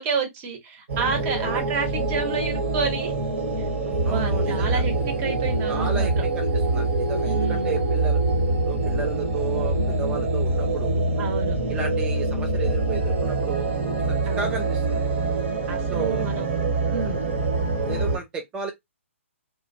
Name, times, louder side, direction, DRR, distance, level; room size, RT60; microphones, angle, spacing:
voice 1, 0.0-3.1 3.8-6.2 7.2-7.8 11.2-11.6 14.3-14.5 15.7-16.5 16.9-17.3, right 4 dB, 30° right, 0.9 m, -30 dB
sound 1, 0.9-18.2, right 2 dB, 60° right, 1.3 m, -25 dB
voice 2, 4.0-4.8 5.7-8.2 8.7-11.0 11.7-13.9 14.3-15.1 15.9-16.3 17.8-18.7, right 6 dB, 15° right, 0.4 m, -33 dB
2.7 x 2.1 x 2.6 m
hypercardioid pair, 135°, 7 cm